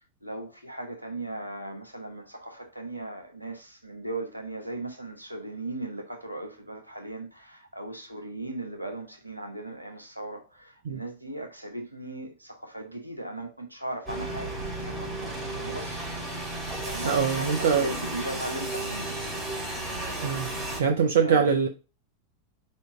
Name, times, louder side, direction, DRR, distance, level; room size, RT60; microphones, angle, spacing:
voice 1, 0.2-16.0 16.5-19.2 21.0-21.5, right 2 dB, 90° right, 1.2 m, -38 dB
sound 1, 14.1-20.8, right 1 dB, 15° right, 2.6 m, -33 dB
voice 2, 17.0-17.9 20.2-20.5 20.8-21.7, right 6 dB, 60° right, 0.7 m, -23 dB
4.6 x 4.3 x 4.8 m
figure-of-eight pair, 90°, 0 cm